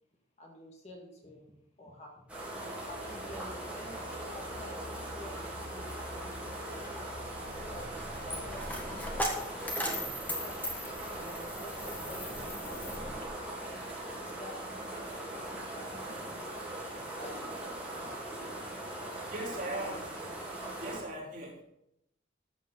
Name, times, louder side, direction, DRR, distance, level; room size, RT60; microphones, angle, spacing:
voice 1, 0.4-1.5 1.8-2.3 2.8-7.1 7.6-10.6 11.1-13.6 14.3-16.4 17.2-17.8, left 1 dB, 35° left, 0 dB, 1.9 m, -50 dB
sound 1, 2.3-21.0, right 1 dB, 5° right, 3.3 m, -40 dB
Coin (dropping), 7.2-13.3, equal, 10° left, 1.5 m, -39 dB
voice 2, 19.3-20.0 20.8-21.6, right 1 dB, 40° right, -5 dB, 3.5 m, -38 dB
14.0 x 7.4 x 3.9 m, 0.82 s
head